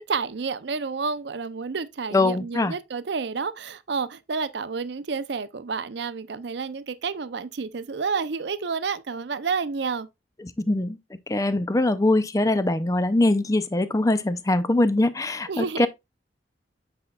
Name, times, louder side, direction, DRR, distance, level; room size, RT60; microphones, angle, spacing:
voice 1, 0.1-10.1 15.5-15.9, right 5 dB, 65° right, 0.5 m, -30 dB
voice 2, 2.1-2.7 10.6-11.0 11.3-15.9, left 2 dB, 20° left, 0.4 m, -22 dB
8.0 x 5.2 x 2.3 m
head